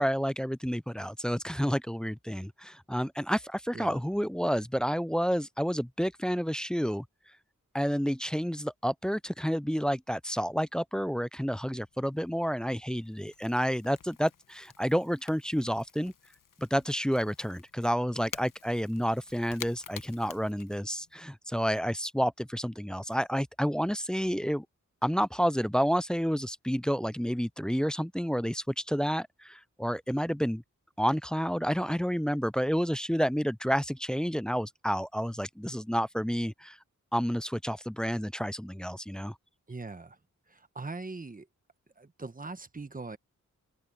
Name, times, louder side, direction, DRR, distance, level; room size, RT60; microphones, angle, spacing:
voice 1, 0.0-7.0 7.7-16.1 16.6-24.7 25.0-30.6 31.0-36.8 37.1-39.4, equal, 5° left, 0.3 m, -30 dB
Crackle / Crack, 11.7-21.2, left 7 dB, 90° left, 1.1 m, -50 dB
voice 2, 39.7-40.2 40.5-41.5 42.0-43.2, right 3 dB, 25° right, 1.2 m, -41 dB
open air
wide cardioid pair, 90°, 31 cm